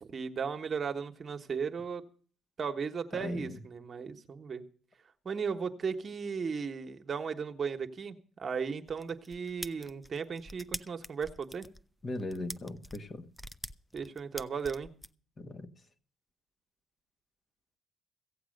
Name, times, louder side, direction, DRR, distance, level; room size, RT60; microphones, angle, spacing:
voice 1, 0.0-2.0 2.6-4.6 5.2-11.7 13.9-14.9, right 6 dB, 45° right, 1.3 m, -36 dB
voice 2, 3.1-3.6 12.0-13.2 15.4-15.7, left 2 dB, 40° left, 1.6 m, -38 dB
sound 1, 8.9-15.1, left 1 dB, 5° left, 0.6 m, -44 dB
16.0 x 8.0 x 6.5 m
supercardioid pair, 70°, 0 cm